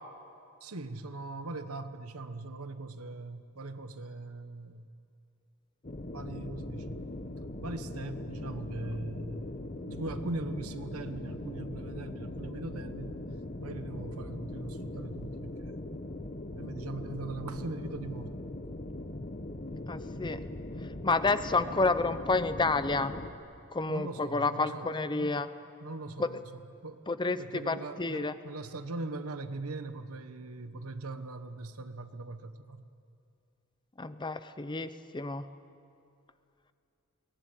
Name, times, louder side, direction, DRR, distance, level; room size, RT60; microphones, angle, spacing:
voice 1, 0.6-4.9 6.1-7.0 7.6-15.7 16.5-18.4 23.9-25.4 25.8-32.9, right 2 dB, 75° right, 10 dB, 1.2 m, -40 dB
sound 1, 5.8-23.3, left 1 dB, 35° left, 1.1 m, -40 dB
voice 2, 19.9-20.4 21.0-23.1 23.7-25.5 26.2-26.3 27.1-28.3 34.0-35.4, left 3 dB, 20° left, 12 dB, 0.7 m, -29 dB
22.5 x 18.5 x 9.9 m, 2.6 s
head